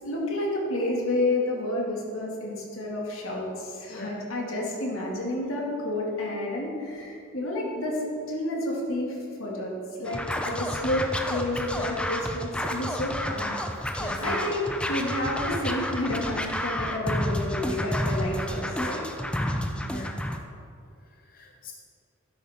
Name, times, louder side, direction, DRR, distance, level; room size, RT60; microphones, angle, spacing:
voice 1, 0.0-9.7 10.0-13.5 14.2-14.6 14.9-19.1, left 1 dB, 85° left, -2 dB, 2.3 m, -30 dB
voice 2, 3.9-4.2 14.0-14.4 19.8-20.2 21.3-21.7, left 2 dB, 45° left, 2 dB, 0.7 m, -40 dB
Scratching (performance technique), 10.1-20.4, equal, 5° left, 0.6 m, -30 dB
12.5 x 10.5 x 3.7 m, 2.5 s
head